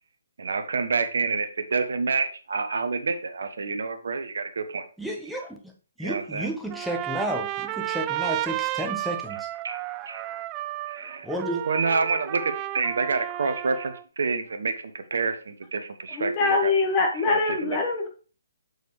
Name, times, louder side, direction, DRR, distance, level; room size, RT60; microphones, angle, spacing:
voice 1, 0.4-4.8 6.0-6.5 9.6-9.8 10.1-10.2 10.9-11.3 11.7-16.7 17.3-17.8, right 4 dB, 65° right, 8 dB, 1.1 m, -28 dB
voice 2, 5.0-5.7 6.0-9.5 11.2-11.7, right 1 dB, ahead, 1 dB, 1.2 m, -32 dB
Trumpet, 6.7-14.0, right 14 dB, 25° right, 0.3 m, -32 dB
voice 3, 16.1-18.1, left 3 dB, 25° left, 2 dB, 1.5 m, -23 dB
6.7 x 6.5 x 3.2 m, 0.36 s
figure-of-eight pair, 140°, 0 cm